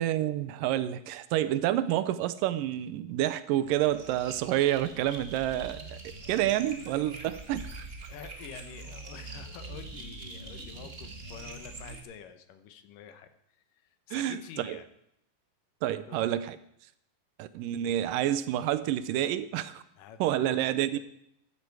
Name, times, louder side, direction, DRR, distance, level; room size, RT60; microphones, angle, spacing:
voice 1, 0.0-6.0 6.3-7.9 14.1-14.8 15.8-16.6 17.4-19.8 20.2-21.0, right 12 dB, 80° right, 14 dB, 2.3 m, -29 dB
sound 1, 3.6-12.0, right 3 dB, 40° right, 0.8 m, -44 dB
voice 2, 8.1-13.3 13.7-14.9 16.1-16.3 20.0-20.6 20.9-21.0, left 7 dB, 75° left, 10 dB, 2.6 m, -47 dB
14.5 x 12.5 x 4.7 m, 0.73 s
omnidirectional pair, 4.0 m